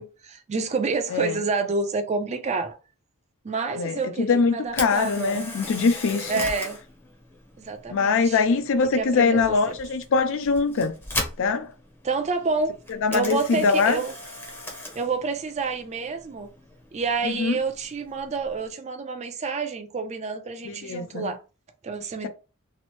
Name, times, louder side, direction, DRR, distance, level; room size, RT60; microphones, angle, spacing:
voice 1, 0.0-2.8 3.4-5.5 6.3-6.8 7.6-8.4 8.9-9.5 12.0-12.8 13.1-14.1 14.9-16.5 16.9-21.4 21.8-22.3, right 4 dB, 30° right, 0.4 m, -28 dB
voice 2, 3.8-6.3 7.9-10.9 11.4-11.7 13.0-14.0 17.2-17.6 20.6-21.3, left 4 dB, 60° left, 0.4 m, -23 dB
Camera, 4.6-18.7, left 1 dB, 10° left, 0.7 m, -39 dB
2.9 x 2.0 x 3.0 m
head